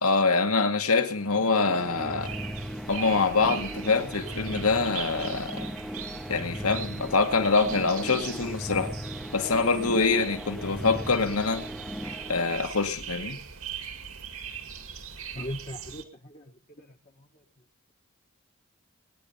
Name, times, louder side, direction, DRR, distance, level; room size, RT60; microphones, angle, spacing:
voice 1, 0.0-2.3 2.9-5.7 6.3-8.9 9.3-11.6 12.3-13.4, left 4 dB, 80° left, 2.1 m, -25 dB
sound 1, 1.2-13.0, equal, ahead, 0.7 m, -38 dB
sound 2, 2.2-16.0, right 7 dB, 75° right, 2.3 m, -41 dB
voice 2, 15.3-17.3, left 1 dB, 35° left, 1.3 m, -40 dB
21.0 x 10.5 x 5.7 m
head